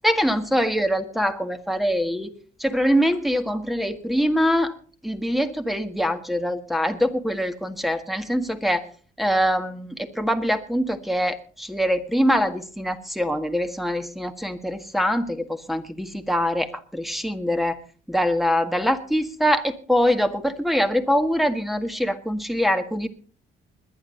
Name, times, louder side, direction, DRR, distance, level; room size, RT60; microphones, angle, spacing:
voice 1, 0.0-2.3 2.6-4.8 5.0-8.9 9.2-17.8 18.1-23.1, equal, ahead, 8 dB, 1.8 m, -23 dB
21.0 x 10.5 x 4.1 m, 0.39 s
cardioid pair, 90°, 20 cm